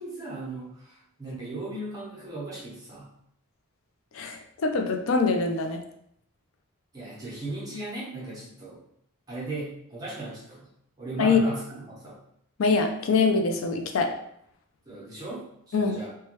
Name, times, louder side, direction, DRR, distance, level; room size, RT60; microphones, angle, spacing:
voice 1, 0.0-3.1 6.9-8.8 9.3-10.7 11.0-12.2 14.9-16.1, right 2 dB, 20° right, -7 dB, 0.8 m, -37 dB
voice 2, 4.1-5.8 11.2-11.4 12.6-14.1 15.7-16.0, left 4 dB, 70° left, 4 dB, 0.4 m, -24 dB
3.0 x 2.2 x 3.0 m, 0.73 s
head